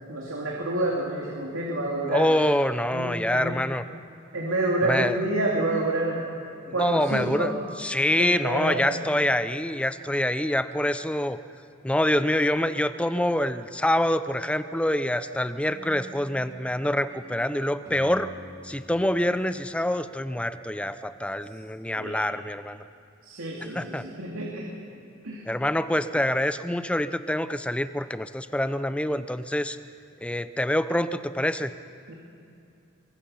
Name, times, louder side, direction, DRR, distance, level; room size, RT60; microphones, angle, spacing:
voice 1, 0.1-2.3 2.9-3.6 4.3-6.3 6.7-7.6 8.2-9.0 22.0-22.2 23.2-24.8 25.2-25.5 32.1-32.2, right 2 dB, 90° right, -3 dB, 2.7 m, -28 dB
voice 2, 2.1-3.8 4.9-5.2 6.8-7.5 7.8-11.4 11.8-18.3 18.6-22.8 23.7-24.1 25.5-29.8 30.2-31.7, left 1 dB, 5° left, 12 dB, 0.5 m, -26 dB
sound 1, 15.7-20.8, right 1 dB, 15° right, 3.1 m, -48 dB
22.5 x 22.5 x 5.6 m, 2.6 s
head